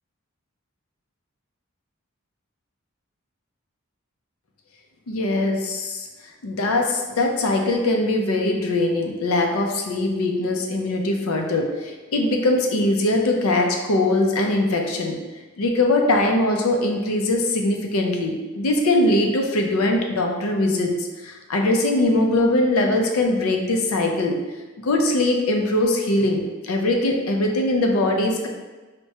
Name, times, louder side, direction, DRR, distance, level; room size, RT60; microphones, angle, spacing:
voice 1, 5.1-6.1 6.4-15.2 15.6-24.4 24.8-28.5, left 2 dB, 90° left, 2 dB, 0.5 m, -21 dB
4.5 x 2.2 x 2.7 m, 1.2 s
head